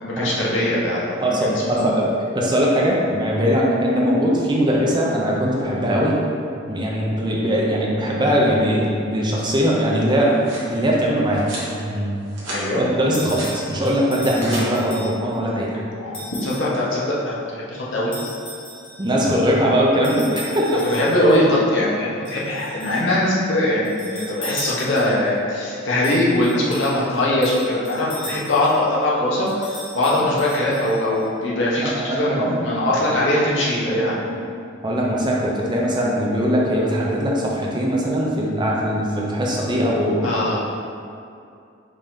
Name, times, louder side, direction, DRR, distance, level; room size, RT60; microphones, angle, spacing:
voice 1, 0.0-2.0 12.5-12.8 16.0-18.1 20.9-34.2 40.2-40.6, left 1 dB, 70° left, -6 dB, 1.0 m, -21 dB
voice 2, 1.2-6.2 6.7-10.4 10.7-12.2 12.8-15.8 19.0-20.8 31.8-33.0 33.9-34.0 34.8-40.5, equal, 25° right, -3 dB, 0.5 m, -21 dB
sound 1, 10.3-10.7 11.4-11.7 12.2-12.6 13.0-13.5 14.1-14.6, right 1 dB, 70° right, 1.3 m, -34 dB
sound 2, 13.1-15.4 16.1-16.7 18.1-19.1 20.0-21.4 22.2-23.1 23.8-25.3 26.0-28.8 29.5-31.2, equal, 30° left, 1.2 m, -36 dB
5.2 x 2.8 x 3.6 m, 2.4 s
head